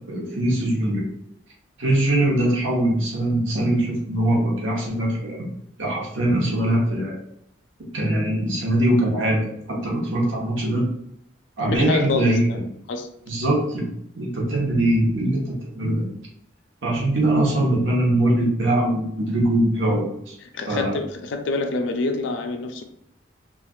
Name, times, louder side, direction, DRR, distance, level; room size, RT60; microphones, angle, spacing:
voice 1, 0.1-1.0 1.8-5.5 5.8-7.2 7.9-10.8 11.6-12.6 13.3-13.9 14.2-16.0 16.8-20.4 20.7-21.0, right 1 dB, 80° right, -3 dB, 1.0 m, -22 dB
voice 2, 11.6-12.6 12.9-13.1 20.4-22.8, left 3 dB, 70° left, 6 dB, 0.4 m, -27 dB
3.1 x 2.4 x 2.3 m, 0.76 s
head